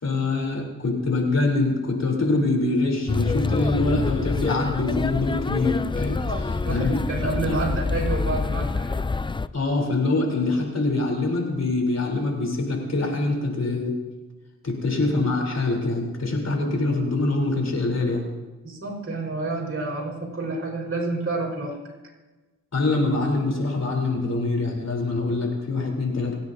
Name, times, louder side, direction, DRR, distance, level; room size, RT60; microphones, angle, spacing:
voice 1, 0.0-7.0 7.2-7.6 9.5-13.9 14.6-18.2 22.7-26.3, left 2 dB, 60° left, 0 dB, 3.7 m, -24 dB
sound 1, 3.1-9.5, left 4 dB, 15° left, 0.4 m, -26 dB
voice 2, 6.2-9.0 18.6-21.8, right 2 dB, 45° right, -2 dB, 5.3 m, -29 dB
28.0 x 10.0 x 2.7 m, 1.2 s
cardioid pair, 60°, 30 cm